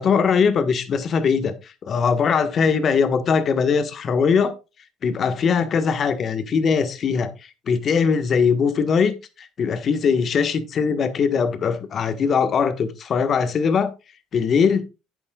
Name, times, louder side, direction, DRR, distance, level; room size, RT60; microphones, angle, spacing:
voice 1, 0.0-4.5 5.0-7.3 7.7-13.9 14.3-14.8, left 6 dB, 50° left, 1.4 m, -21 dB
11.5 x 8.6 x 2.4 m
supercardioid pair, 75°, 0 cm